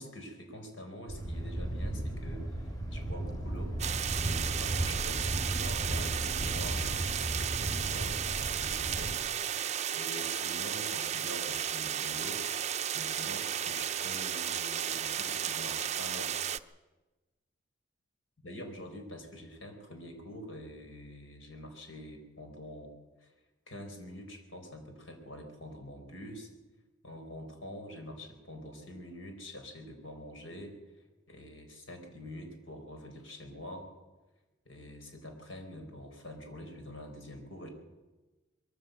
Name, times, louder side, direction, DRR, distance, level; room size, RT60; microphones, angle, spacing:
voice 1, 0.0-3.8 4.1-9.6 9.9-16.4 18.4-22.9 23.2-23.3 23.7-26.5 27.0-30.8 31.3-33.9 34.6-37.7, left 1 dB, 85° left, 4 dB, 4.5 m, -46 dB
Thunder, 1.1-9.1, right 1 dB, 20° left, 3.3 m, -35 dB
sound 1, 3.8-16.6, right 9 dB, 35° right, 0.6 m, -34 dB
22.0 x 14.5 x 8.1 m, 1.2 s
head